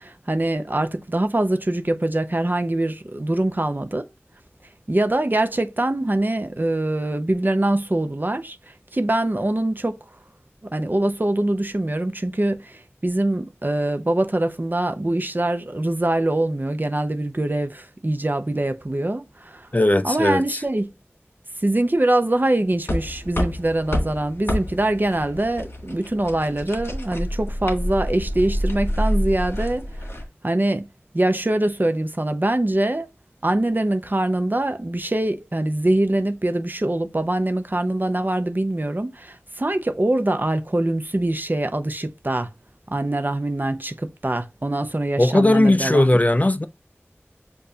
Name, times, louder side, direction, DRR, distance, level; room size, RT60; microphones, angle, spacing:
voice 1, 0.0-4.0 4.9-8.6 8.9-10.0 10.7-19.7 20.0-20.9 21.6-29.9 30.4-30.9 31.1-33.1 33.4-42.5 42.9-46.2, right 1 dB, 45° right, 0.6 m, -23 dB
voice 2, 19.7-20.6 45.2-46.7, left 1 dB, 35° left, 0.4 m, -18 dB
sound 1, 22.9-30.2, equal, 55° left, 1.5 m, -27 dB
6.8 x 2.6 x 2.7 m
wide cardioid pair, 40°, 5 cm